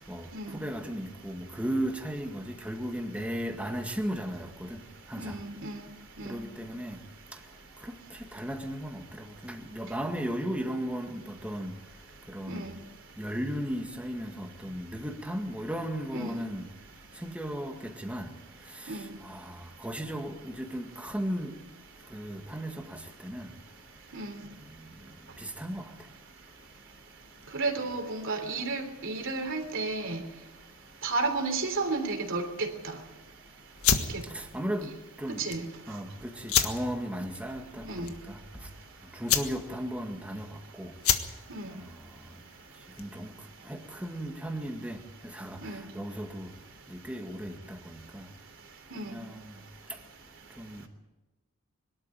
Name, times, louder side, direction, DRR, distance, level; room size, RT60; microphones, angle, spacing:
voice 1, 0.5-4.8 5.1-5.4 6.2-7.0 7.8-7.9 8.3-11.7 12.3-12.7 13.2-16.7 17.2-18.3 19.2-21.5 22.1-23.5 25.4-25.8 34.3-34.9 35.2-35.4 35.9-38.4 39.1-40.5 40.8-40.9 41.7-41.9 43.0-43.3 43.7-45.0 45.2-45.6 46.0-46.5 46.9-48.2 49.1-49.5 50.6-50.8, equal, 5° right, 1.9 m, -35 dB
voice 2, 5.2-5.8 6.2-6.4 12.5-12.7 16.1-16.4 18.9-19.1 24.1-24.4 27.5-30.2 31.0-33.0 34.1-34.2 35.4-35.7 37.8-38.1 41.5-41.7 45.6-45.8 48.9-49.2, right 3 dB, 65° right, 3.3 m, -32 dB
sound 1, 33.8-43.3, left 8 dB, 85° left, 1.6 m, -32 dB
22.5 x 13.0 x 9.0 m
head